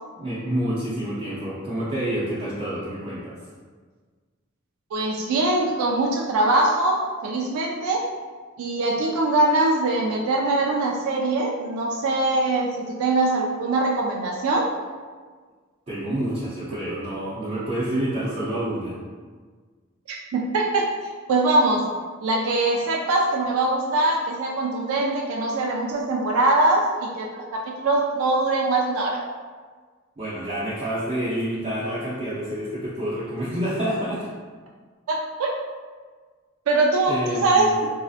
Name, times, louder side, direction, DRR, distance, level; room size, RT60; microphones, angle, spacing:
voice 1, 0.2-3.4 15.9-19.0 30.2-34.3 37.1-37.7, right 1 dB, 30° right, -11 dB, 0.6 m, -28 dB
voice 2, 4.9-8.0 8.6-14.7 20.1-21.9 22.2-29.2 35.1-35.5 36.7-37.8, right 2 dB, 75° right, -1 dB, 0.3 m, -22 dB
3.2 x 2.6 x 2.4 m, 1.5 s
head